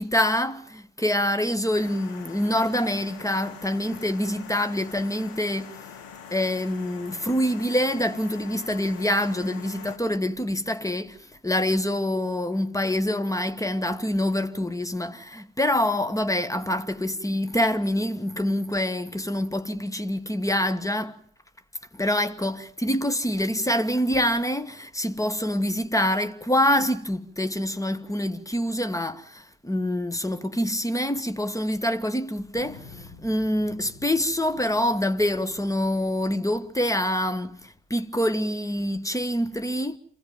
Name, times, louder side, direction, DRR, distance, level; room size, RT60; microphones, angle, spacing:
voice 1, 0.0-5.7 6.3-21.2 21.9-40.0, left 1 dB, 10° left, 1.6 m, -26 dB
sound 1, 1.7-10.0, left 7 dB, 75° left, 2.2 m, -44 dB
Thunder, 32.5-37.7, left 4 dB, 55° left, 5.9 m, -50 dB
27.5 x 15.5 x 9.2 m
hypercardioid pair, 50°, 38 cm